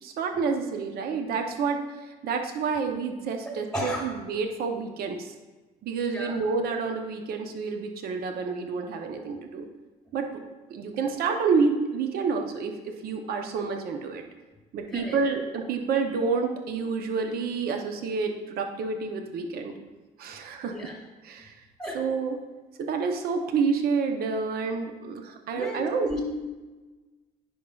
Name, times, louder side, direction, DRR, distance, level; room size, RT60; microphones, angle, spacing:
voice 1, 0.0-1.8 2.1-5.3 5.8-9.7 10.1-10.3 10.7-14.2 14.7-19.7 20.2-20.9 21.2-21.5 21.9-22.4 22.8-26.1, right 5 dB, 65° right, 5 dB, 0.7 m, -29 dB
voice 2, 3.7-4.1 6.1-6.4 14.9-15.2 20.6-20.9 21.8-22.0 25.5-26.2, equal, 5° left, -1 dB, 2.0 m, -33 dB
10.0 x 5.4 x 2.3 m, 1.2 s
cardioid pair, 110°, 17 cm